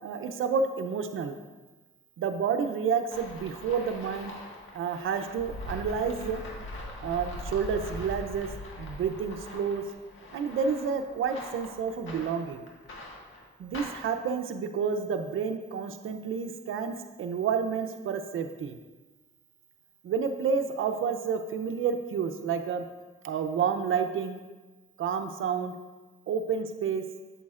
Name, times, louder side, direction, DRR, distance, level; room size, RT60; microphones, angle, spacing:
voice 1, 0.0-1.4 2.2-4.3 4.7-6.4 7.0-8.5 8.8-9.8 10.3-12.6 13.6-18.8 20.0-22.8 23.2-24.4 25.0-25.7 26.3-27.0, right 6 dB, 75° right, 7 dB, 0.6 m, -30 dB
sound 1, 3.1-14.2, left 1 dB, 75° left, 1.5 m, -42 dB
8.4 x 7.0 x 2.4 m, 1.2 s
cardioid pair, 65°, 21 cm